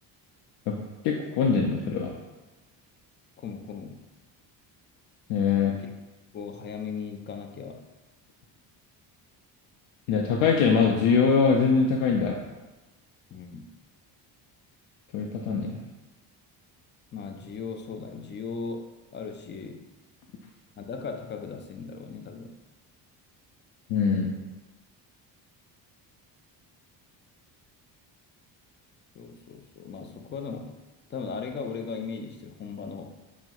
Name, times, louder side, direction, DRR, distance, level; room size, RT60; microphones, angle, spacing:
voice 1, 1.0-2.1 5.3-5.7 10.1-12.4 15.1-15.8 23.9-24.3, left 5 dB, 80° left, 0 dB, 0.5 m, -23 dB
voice 2, 3.4-4.1 5.6-5.9 6.3-7.9 13.3-13.7 17.1-19.8 20.8-22.6 29.1-30.8 31.1-33.1, left 5 dB, 25° left, 5 dB, 0.3 m, -37 dB
5.6 x 2.1 x 2.3 m, 1.1 s
supercardioid pair, 80°, 46 cm